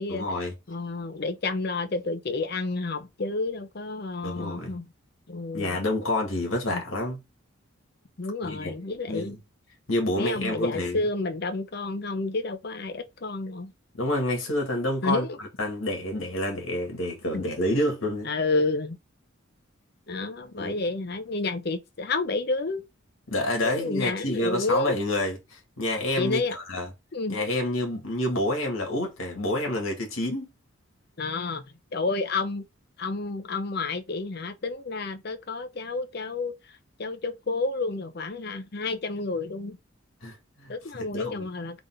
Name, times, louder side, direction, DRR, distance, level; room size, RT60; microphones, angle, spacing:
voice 1, 0.1-0.5 4.2-4.7 5.5-7.2 8.4-8.8 9.1-9.4 9.9-11.0 14.0-18.3 20.6-20.8 23.3-26.9 27.3-30.5 40.2-41.5, left 1 dB, 80° left, 2.0 m, -28 dB
voice 2, 0.7-4.9 5.3-5.8 6.7-6.8 8.2-9.3 10.1-13.7 15.0-15.4 17.3-17.4 18.2-19.0 20.1-22.8 23.6-25.0 26.2-26.6 27.1-27.4 31.2-31.6 31.9-32.6 33.0-36.5 37.0-39.8 40.7-41.8, left 3 dB, 50° left, 0.7 m, -30 dB
4.0 x 3.5 x 3.6 m
head